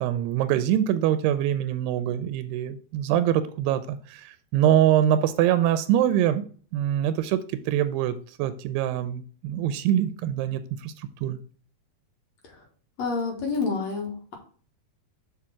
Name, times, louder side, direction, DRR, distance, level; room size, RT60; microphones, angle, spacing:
voice 1, 0.0-6.4 6.7-11.4, right 11 dB, 90° right, 2.6 m, -24 dB
voice 2, 13.0-14.3, left 4 dB, 55° left, 2.2 m, -28 dB
6.0 x 4.9 x 5.7 m
omnidirectional pair, 4.6 m